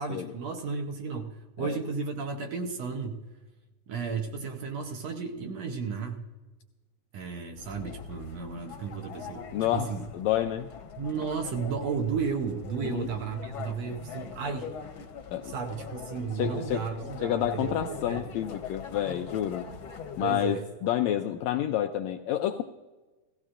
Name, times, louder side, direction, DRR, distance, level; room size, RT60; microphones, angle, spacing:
voice 1, 0.0-3.2 3.9-6.2 7.1-9.5 9.7-10.1 11.0-14.7 15.4-18.3 20.2-20.7, right 5 dB, 70° right, 4 dB, 1.8 m, -33 dB
sound 1, 7.6-20.4, left 6 dB, 55° left, 1.5 m, -43 dB
voice 2, 9.5-9.9 10.1-10.7 12.8-13.1 15.3-15.5 16.3-16.9 17.2-19.7 20.2-22.6, left 11 dB, 85° left, 5 dB, 1.6 m, -29 dB
17.0 x 15.5 x 2.5 m, 1.2 s
omnidirectional pair, 3.6 m